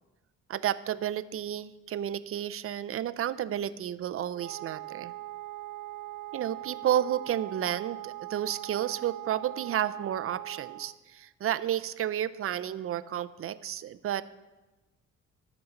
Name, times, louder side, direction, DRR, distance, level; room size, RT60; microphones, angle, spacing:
voice 1, 0.5-5.1 6.3-14.2, right 11 dB, 50° right, 15 dB, 0.5 m, -31 dB
Wind instrument woodwind instrument, 4.3-11.0, right 16 dB, 75° right, 0.9 m, -41 dB
11.5 x 5.2 x 7.2 m, 1.1 s
cardioid pair, 90°, 30 cm